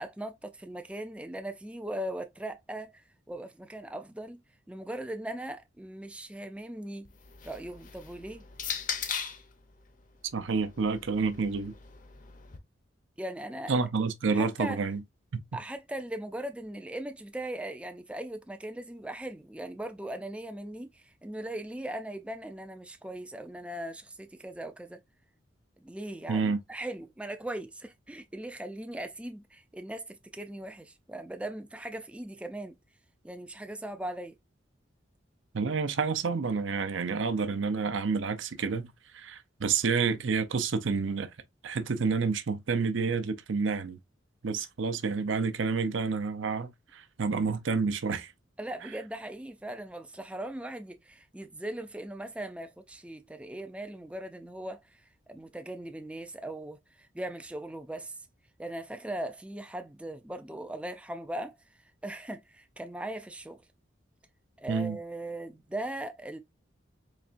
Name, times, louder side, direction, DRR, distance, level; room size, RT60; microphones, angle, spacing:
voice 1, 0.0-4.4 4.7-7.1 7.4-8.4 13.2-13.7 14.3-14.8 15.5-25.0 25.8-32.7 33.2-34.3 48.6-58.3 58.6-61.5 62.0-63.6 64.6-66.4, right 1 dB, 5° right, 0.3 m, -39 dB
sound 1, 7.0-9.5 10.5-12.6, left 7 dB, 40° left, 0.6 m, -39 dB
voice 2, 10.3-11.7 13.7-15.0 15.3-15.4 26.3-26.6 35.5-38.9 39.1-41.3 41.6-44.0 44.4-48.3 64.7-65.0, right 5 dB, 75° right, 0.6 m, -29 dB
4.2 x 3.3 x 2.5 m
head